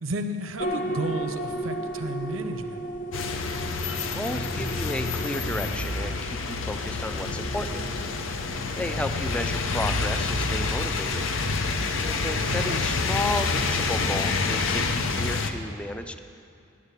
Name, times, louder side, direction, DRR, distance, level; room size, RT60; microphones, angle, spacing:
voice 1, 0.0-2.8 8.8-9.1 12.4-12.8, right 1 dB, 85° right, 8 dB, 0.8 m, -33 dB
sound 1, 0.6-15.4, right 1 dB, 40° left, 0.8 m, -38 dB
sound 2, 3.1-15.5, left 3 dB, 70° left, 0.7 m, -28 dB
voice 2, 4.1-7.8 8.7-11.3 12.0-16.2, left 1 dB, 5° left, 8 dB, 0.4 m, -33 dB
9.7 x 8.8 x 8.2 m, 2.4 s
head